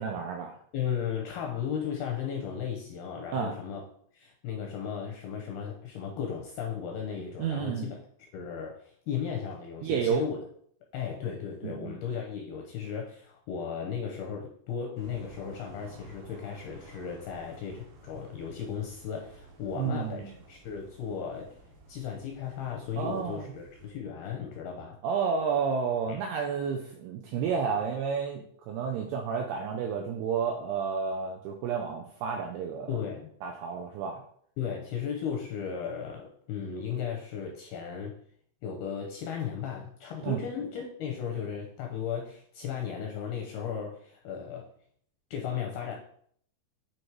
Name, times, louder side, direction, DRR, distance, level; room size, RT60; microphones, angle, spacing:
voice 1, 0.0-0.5 3.3-3.5 7.4-7.9 9.8-10.3 11.6-11.9 19.8-20.4 22.9-23.4 25.0-33.0 33.4-34.2 40.2-40.4, right 6 dB, 90° right, 2 dB, 2.3 m, -31 dB
voice 2, 0.7-3.8 4.1-8.0 8.3-10.4 10.9-21.6 21.9-25.0 26.1-26.2 32.9-33.3 34.6-38.2 38.6-44.7 45.3-46.0, left 7 dB, 80° left, 1 dB, 2.3 m, -35 dB
sound 1, 15.0-23.9, right 2 dB, 65° right, 2.2 m, -53 dB
8.8 x 3.1 x 4.6 m, 0.62 s
omnidirectional pair, 5.4 m